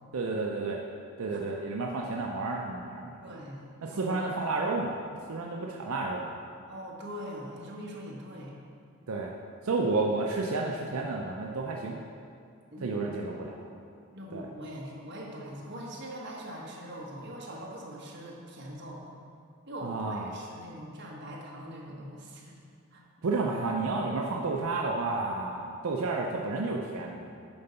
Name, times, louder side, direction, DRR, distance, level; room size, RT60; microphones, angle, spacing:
voice 1, 0.1-0.8 1.2-3.3 3.8-5.0 5.3-6.3 9.1-9.3 9.6-12.0 12.8-13.5 14.3-14.5 19.8-20.3 23.2-27.3, right 3 dB, 85° right, 0 dB, 0.6 m, -31 dB
voice 2, 3.2-4.3 6.7-8.5 12.7-13.0 14.1-19.0 19.7-22.6 22.9-23.0, equal, 55° right, -3 dB, 1.3 m, -42 dB
8.8 x 3.9 x 5.6 m, 2.3 s
head